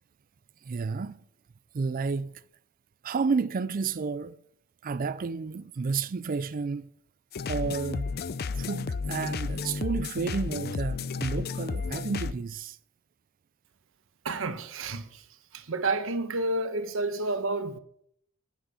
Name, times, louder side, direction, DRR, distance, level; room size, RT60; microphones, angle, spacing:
voice 1, 0.7-1.2 1.7-2.4 3.0-4.4 4.8-6.9 7.5-8.1 8.6-12.8, right 4 dB, 40° right, 0.4 m, -31 dB
sound 1, 7.3-12.3, left 4 dB, 50° left, 0.5 m, -32 dB
voice 2, 14.2-15.1 15.5-17.8, right 2 dB, 70° right, 1.1 m, -30 dB
10.5 x 9.9 x 5.6 m
head